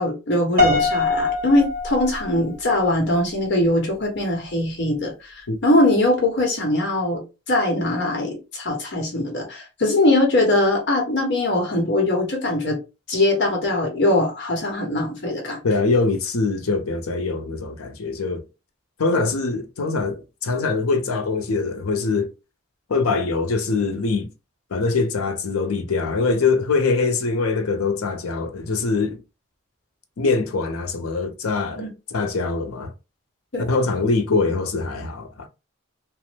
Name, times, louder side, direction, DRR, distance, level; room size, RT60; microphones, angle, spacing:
voice 1, 0.0-7.2 7.5-12.8 13.1-15.6 19.1-19.2 31.8-31.9 33.5-33.6, left 1 dB, 55° left, 0.9 m, -21 dB
Piano, 0.6-2.8, left 3 dB, 45° right, 1.5 m, -22 dB
voice 2, 15.6-18.4 19.0-22.3 22.9-24.3 24.7-29.2 30.2-32.9 33.6-35.5, left 3 dB, 85° left, 0.6 m, -23 dB
2.9 x 2.0 x 3.2 m
head